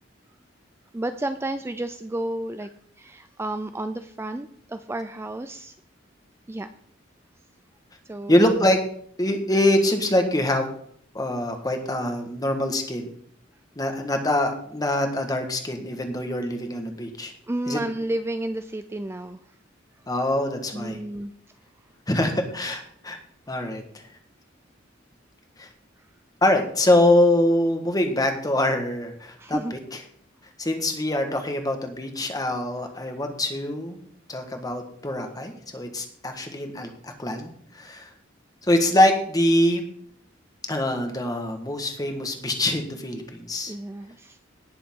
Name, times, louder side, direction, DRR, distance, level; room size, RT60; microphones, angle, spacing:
voice 1, 0.9-2.7 3.0-5.7 6.5-6.7 8.0-8.5 17.5-19.5 19.9-20.0 20.7-21.3 26.0-26.1 29.4-29.7 43.7-44.4, right 1 dB, 15° right, 9 dB, 0.4 m, -31 dB
voice 2, 8.3-8.8 9.2-10.7 11.1-13.1 13.8-17.3 17.7-17.8 20.1-21.0 22.1-23.2 23.5-24.0 25.6-25.7 26.4-29.8 30.6-34.0 34.3-38.1 38.7-39.8 40.7-43.7, left 1 dB, 20° left, 5 dB, 1.5 m, -24 dB
18.0 x 6.9 x 3.7 m, 0.63 s
head